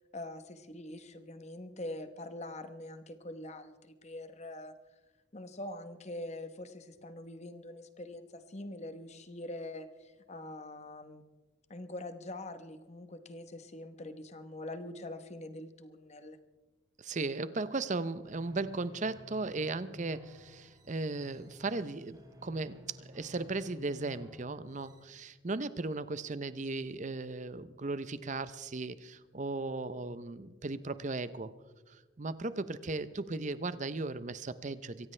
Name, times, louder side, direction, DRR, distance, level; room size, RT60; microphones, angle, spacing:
voice 1, 0.1-4.7 5.3-11.2 11.7-16.4, left 1 dB, 35° left, 10 dB, 1.0 m, -44 dB
voice 2, 17.0-22.8 23.1-31.5 31.9-35.1, right 3 dB, 35° right, 14 dB, 0.6 m, -37 dB
sound 1, 18.2-25.1, left 1 dB, 20° right, 1.8 m, -54 dB
24.0 x 16.5 x 3.3 m, 1.3 s
head